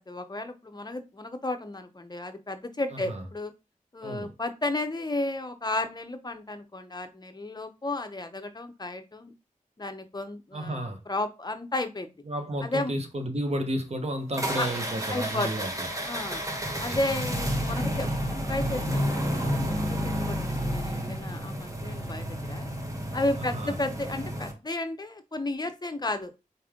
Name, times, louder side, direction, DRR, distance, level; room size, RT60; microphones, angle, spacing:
voice 1, 0.0-3.5 3.9-9.3 9.8-12.1 12.6-12.9 14.6-14.7 15.1-15.5 16.0-16.4 16.8-22.7 23.1-26.3, left 2 dB, 30° left, 0.7 m, -33 dB
voice 2, 10.5-11.0 12.3-15.9 16.7-17.0 23.5-23.7, right 1 dB, 50° right, 1.0 m, -32 dB
sound 1, 14.3-24.5, equal, 25° right, 1.0 m, -31 dB
4.2 x 3.3 x 3.7 m
wide cardioid pair, 65°, 14 cm